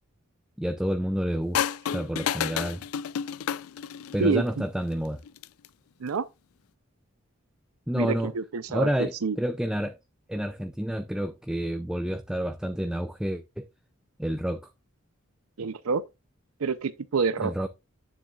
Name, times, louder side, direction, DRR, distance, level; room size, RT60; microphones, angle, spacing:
voice 1, 0.6-1.6 1.9-2.8 4.1-5.2 7.9-8.3 8.7-10.0 10.3-13.7 14.2-14.7 17.4-17.7, equal, 5° right, 0.4 m, -29 dB
sound 1, 1.5-4.3 5.3-5.7, left 9 dB, 80° left, 0.4 m, -30 dB
voice 2, 4.2-4.6 6.0-6.3 7.9-9.4 15.6-16.0 16.6-17.5, right 5 dB, 85° right, 0.5 m, -27 dB
9.5 x 7.2 x 2.3 m
head